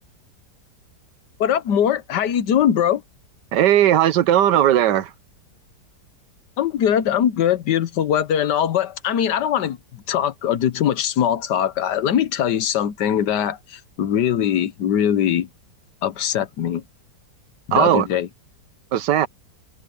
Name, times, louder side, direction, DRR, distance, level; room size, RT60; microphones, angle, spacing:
voice 1, 1.4-3.0 6.6-15.5 16.0-16.8 17.7-18.3, left 9 dB, 80° left, 1.6 m, -21 dB
voice 2, 3.5-5.1 17.7-18.1 18.9-19.3, right 11 dB, 90° right, 1.5 m, -17 dB
omnidirectional pair, 1.8 m